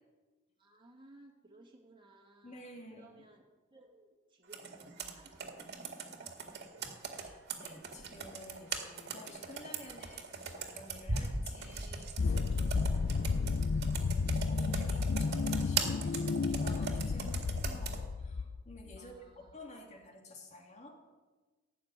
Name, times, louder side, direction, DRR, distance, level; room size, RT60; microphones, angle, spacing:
voice 1, 0.6-2.6 3.0-3.4 3.7-6.3 19.0-19.4, right 2 dB, 25° right, 0 dB, 2.2 m, -59 dB
voice 2, 2.4-3.2 7.2-13.3 14.4-21.0, left 1 dB, 35° left, 2 dB, 2.4 m, -52 dB
Computer keyboard, 4.5-18.0, right 4 dB, 55° right, 2.1 m, -40 dB
sound 1, 12.2-19.0, left 4 dB, 55° left, 0.5 m, -32 dB
17.0 x 6.9 x 9.7 m, 1.3 s
head